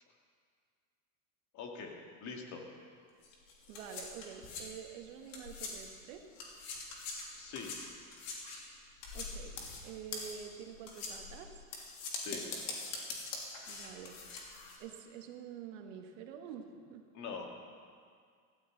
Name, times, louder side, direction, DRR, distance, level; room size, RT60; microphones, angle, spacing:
voice 1, 1.5-2.6 7.3-7.8 12.1-12.4 17.1-17.6, left 5 dB, 45° left, 1 dB, 2.3 m, -44 dB
sound 1, 3.2-6.0 6.3-14.8, left 4 dB, 65° left, 3.1 m, -43 dB
voice 2, 3.7-6.2 9.1-9.6 9.8-11.6 13.7-14.2 14.8-17.0, right 8 dB, 70° right, 4 dB, 1.7 m, -47 dB
15.5 x 14.5 x 3.9 m, 2.1 s
supercardioid pair, 120°, 40 cm